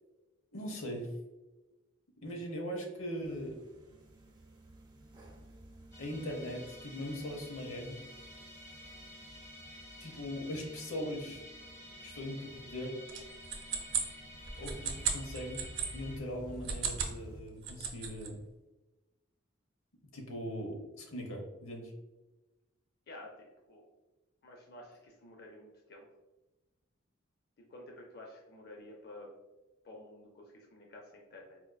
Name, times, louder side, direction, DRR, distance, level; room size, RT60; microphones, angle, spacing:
voice 1, 0.5-1.1 2.2-3.6 6.0-8.0 10.0-11.4 12.0-13.0 14.6-15.6 15.9-18.4 20.1-21.9, equal, 85° left, 2 dB, 0.8 m, -40 dB
sound 1, 3.2-17.4, right 1 dB, 20° right, 0.4 m, -53 dB
Musical instrument, 5.9-16.2, left 1 dB, 15° left, 0.7 m, -51 dB
sound 2, 13.1-15.9 16.5-17.2 17.5-18.3, right 7 dB, 65° right, 0.6 m, -35 dB
voice 2, 23.1-23.9 24.4-26.1 27.7-29.3 29.8-31.6, left 1 dB, 50° left, -1 dB, 0.5 m, -51 dB
4.3 x 2.4 x 2.2 m, 1.1 s
head